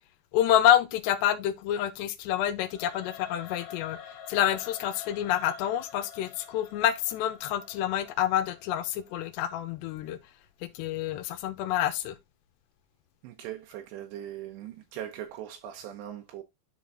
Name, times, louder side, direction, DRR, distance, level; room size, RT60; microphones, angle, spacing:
voice 1, 0.3-4.0 4.3-10.2 10.6-12.2, left 11 dB, 85° left, 2.9 m, -27 dB
Singing / Musical instrument, 2.6-9.7, left 8 dB, 65° left, 3.1 m, -48 dB
voice 2, 13.2-16.4, right 11 dB, 80° right, 3.0 m, -40 dB
10.5 x 3.8 x 3.6 m
omnidirectional pair, 5.0 m